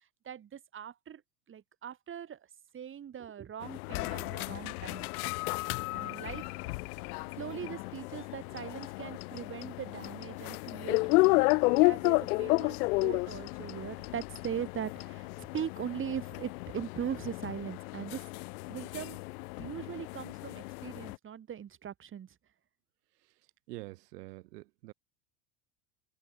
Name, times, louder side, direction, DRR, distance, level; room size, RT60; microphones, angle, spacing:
voice 1, 0.2-1.2 1.5-2.5 2.7-5.1 5.9-6.5 7.3-18.2 18.7-19.2 19.6-22.3, right 9 dB, 25° right, 1.2 m, -40 dB
sound 1, 3.6-21.2, left 25 dB, 70° left, 0.7 m, -32 dB
sound 2, 4.6-6.7 7.4-10.5, left 9 dB, 35° left, 4.6 m, -63 dB
voice 2, 23.7-24.9, right 19 dB, 80° right, 0.8 m, -46 dB
hypercardioid pair, 90°, 47 cm